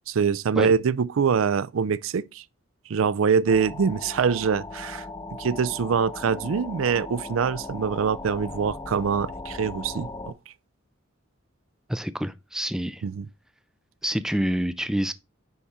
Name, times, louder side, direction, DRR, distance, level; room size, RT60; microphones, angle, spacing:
voice 1, 0.1-2.4 2.9-5.1 5.4-10.3 13.0-13.3, right 6 dB, 75° right, 0.4 m, -24 dB
sound 1, 3.5-10.3, left 2 dB, 20° left, 0.9 m, -38 dB
voice 2, 11.9-13.0 14.0-15.1, equal, 5° right, 0.4 m, -27 dB
9.6 x 3.6 x 4.2 m
head